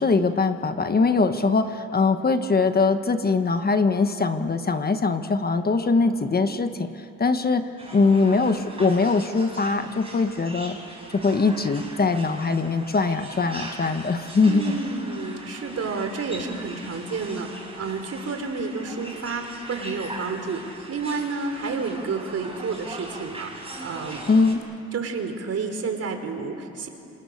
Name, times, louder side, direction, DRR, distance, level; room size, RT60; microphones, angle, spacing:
voice 1, 0.0-10.8 11.1-14.7 24.3-24.6, left 4 dB, 30° left, 8 dB, 1.4 m, -22 dB
sound 1, 7.8-24.6, right 2 dB, 20° right, 5.9 m, -40 dB
voice 2, 14.4-19.4 19.7-20.6 20.9-24.2 24.9-26.9, right 4 dB, 55° right, 6 dB, 3.7 m, -30 dB
27.5 x 27.5 x 6.7 m, 2.8 s
cardioid pair, 90°, 30 cm